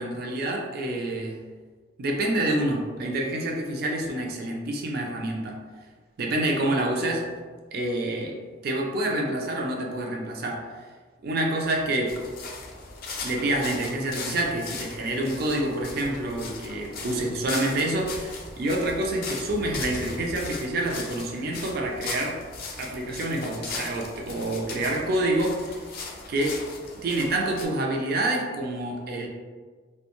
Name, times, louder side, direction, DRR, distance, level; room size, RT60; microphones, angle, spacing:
voice 1, 0.0-1.4 2.0-5.6 6.2-7.3 7.7-8.4 8.6-10.7 11.2-12.2 13.1-22.4 22.8-25.8 26.3-26.6 27.0-29.3, right 1 dB, 55° right, 0 dB, 0.4 m, -27 dB
sound 1, 12.1-27.6, left 3 dB, 55° left, 0.4 m, -38 dB
2.4 x 2.2 x 2.9 m, 1.5 s
head